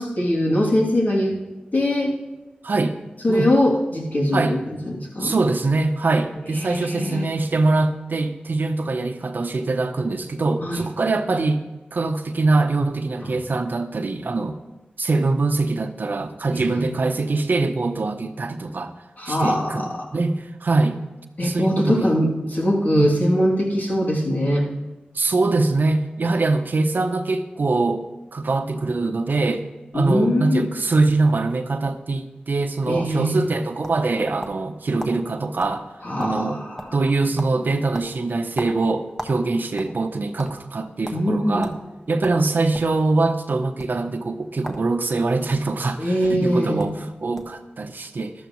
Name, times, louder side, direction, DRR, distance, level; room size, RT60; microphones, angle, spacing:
voice 1, 0.0-1.4 1.7-2.1 3.2-5.3 6.5-7.3 10.6-10.8 16.7-16.8 19.2-20.1 21.4-24.7 29.9-30.7 32.9-33.4 36.0-36.9 41.1-41.7 46.0-46.9, left 1 dB, 55° left, -4 dB, 2.9 m, -22 dB
voice 2, 2.6-3.0 3.3-3.5 4.3-4.6 5.2-11.6 11.9-14.6 15.0-18.9 19.3-21.0 21.4-22.1 22.9-23.2 25.1-28.0 28.3-29.7 29.9-35.8 36.2-36.6 36.9-41.7 42.1-48.3, right 3 dB, 70° right, 7 dB, 0.9 m, -23 dB
sound 1, 33.4-34.7 35.0-35.2 35.6-35.8 36.0-36.5 36.8-37.1 37.4-37.6 37.9-39.4 39.7-40.5 41.0-41.2 41.6-41.8 42.2-42.9 43.7-43.9 44.6-44.9 45.2-45.7 46.5-46.6 46.8-47.0 47.4-47.6, equal, 10° left, 1.4 m, -35 dB
14.0 x 12.5 x 3.2 m, 1.1 s
wide cardioid pair, 60°, 3 cm